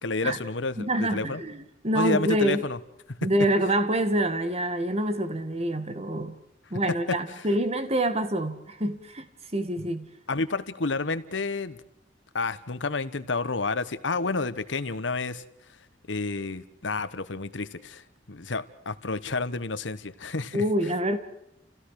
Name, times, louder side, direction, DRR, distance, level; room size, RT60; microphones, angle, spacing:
voice 1, 0.0-1.4 1.9-2.8 10.3-11.8 12.3-15.4 16.1-18.0 18.3-20.6, left 3 dB, 80° left, 1.3 m, -30 dB
voice 2, 0.8-2.7 3.2-6.4 6.7-9.3 9.5-10.1 20.5-21.2, right 1 dB, 35° right, 1.8 m, -26 dB
29.0 x 16.5 x 6.6 m
head